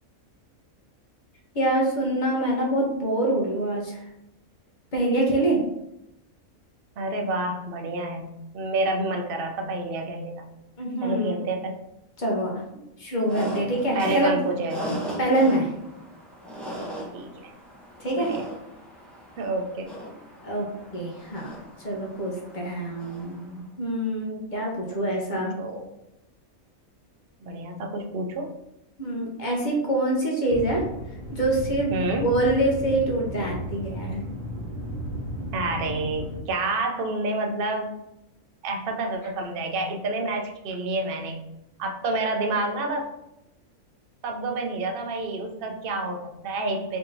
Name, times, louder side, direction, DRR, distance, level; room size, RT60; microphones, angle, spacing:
voice 1, 1.5-4.1 4.9-5.6 10.8-11.4 12.2-12.6 13.0-14.3 15.2-15.7 18.0-18.3 20.4-20.7 20.9-21.5 21.8-25.5 29.0-30.8 31.3-31.9 32.2-34.2, right 1 dB, 40° left, -2 dB, 0.8 m, -25 dB
voice 2, 7.0-10.5 11.0-11.8 13.9-15.0 17.1-17.5 18.2-18.4 19.4-19.9 25.6-25.9 27.4-28.5 31.9-32.3 35.5-37.9 38.6-41.4 41.8-43.1 44.2-47.0, right 2 dB, 55° right, 3 dB, 0.6 m, -28 dB
sound 1, 13.3-23.6, equal, ahead, 0.6 m, -38 dB
sound 2, 30.5-36.4, right 1 dB, 30° right, 1.0 m, -34 dB
3.5 x 2.8 x 3.8 m, 0.86 s
omnidirectional pair, 1.5 m